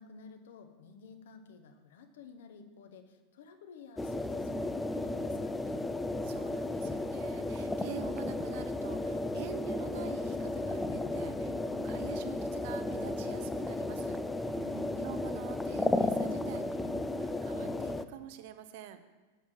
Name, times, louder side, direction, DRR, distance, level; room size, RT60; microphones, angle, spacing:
voice 1, 0.0-5.8 14.6-14.9, left 5 dB, 60° left, 7 dB, 1.1 m, -53 dB
sound 1, 4.0-18.0, left 2 dB, 10° left, 0.4 m, -34 dB
voice 2, 6.2-14.6 14.9-19.0, right 11 dB, 50° right, 10 dB, 0.7 m, -47 dB
7.2 x 7.2 x 7.6 m, 1.2 s
figure-of-eight pair, 90°, 0 cm